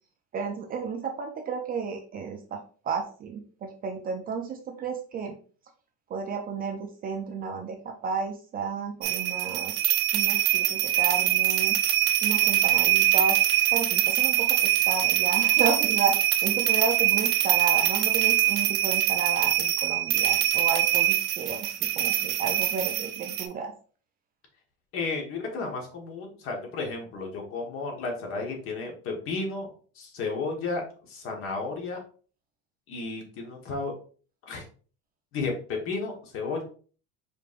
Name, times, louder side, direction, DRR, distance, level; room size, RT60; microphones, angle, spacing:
voice 1, 0.3-5.4 6.1-9.7 10.1-11.8 12.2-13.4 13.7-23.7, right 5 dB, 30° right, 4 dB, 0.5 m, -32 dB
sound 1, 9.0-23.5, right 13 dB, 70° right, 0.8 m, -24 dB
voice 2, 24.9-30.8 31.1-32.0 32.9-33.9 34.4-34.6 35.3-36.6, left 3 dB, 45° left, 1 dB, 1.3 m, -33 dB
4.9 x 3.2 x 2.5 m, 0.41 s
cardioid pair, 150°, 31 cm